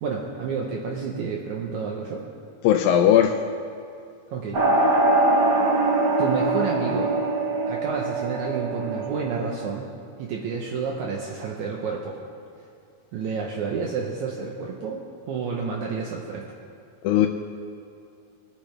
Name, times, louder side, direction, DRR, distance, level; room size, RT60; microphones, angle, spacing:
voice 1, 0.0-2.3 4.3-4.6 6.2-7.2 7.7-9.9 10.2-12.2 13.1-16.5, right 5 dB, 70° right, -1 dB, 2.0 m, -30 dB
voice 2, 2.6-3.3 17.0-17.3, left 10 dB, 85° left, 3 dB, 2.4 m, -17 dB
sound 1, 4.5-9.7, right 2 dB, 55° right, 1.2 m, -23 dB
22.5 x 8.7 x 3.3 m, 2.4 s
omnidirectional pair, 4.0 m